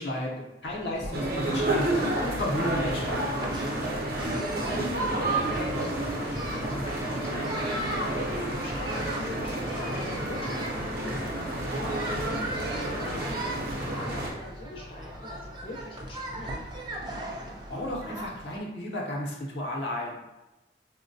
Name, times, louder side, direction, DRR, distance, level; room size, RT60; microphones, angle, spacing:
voice 1, 0.0-3.3 3.5-3.9 17.7-20.3, left 1 dB, 75° left, -2 dB, 0.7 m, -33 dB
sound 1, 0.6-18.6, right 1 dB, 25° right, 0.4 m, -39 dB
sound 2, 1.1-14.3, right 1 dB, 55° right, 0.7 m, -30 dB
voice 2, 4.0-16.7, left 1 dB, 30° left, -3 dB, 0.6 m, -43 dB
4.3 x 2.1 x 2.6 m, 1.0 s
head